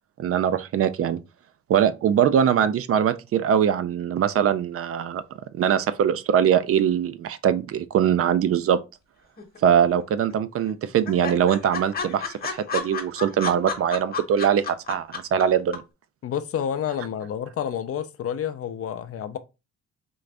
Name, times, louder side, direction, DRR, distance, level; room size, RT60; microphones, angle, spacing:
voice 1, 0.2-1.2 1.7-5.2 5.5-8.8 9.6-15.8, right 9 dB, 50° right, 0.4 m, -22 dB
sound 1, 9.4-10.0 10.3-10.4 10.7-10.8 11.1-15.4 15.7-15.8, left 5 dB, 30° left, 1.0 m, -31 dB
voice 2, 16.2-19.4, left 9 dB, 50° left, 0.5 m, -29 dB
3.8 x 2.5 x 3.3 m
cardioid pair, 90°, 30 cm